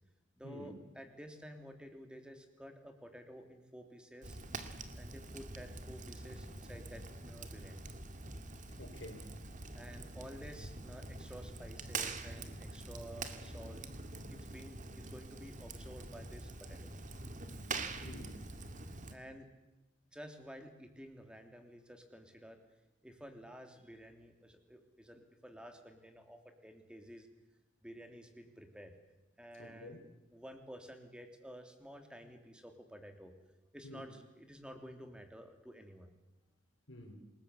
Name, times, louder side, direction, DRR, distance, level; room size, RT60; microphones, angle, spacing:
voice 1, 0.4-4.4 4.9-7.9 9.7-13.8 14.3-16.9 19.1-19.5 20.1-22.6 23.0-27.3 27.8-28.9 29.4-30.0 30.3-33.3 33.7-36.1, equal, 5° right, 5 dB, 3.0 m, -52 dB
Fire, 4.2-19.2, right 3 dB, 40° right, 2.1 m, -45 dB
voice 2, 8.8-9.2 18.0-18.4 29.6-30.0 33.8-34.0 36.9-37.1, left 1 dB, 80° left, 3 dB, 4.3 m, -49 dB
28.0 x 21.0 x 8.4 m, 1.0 s
head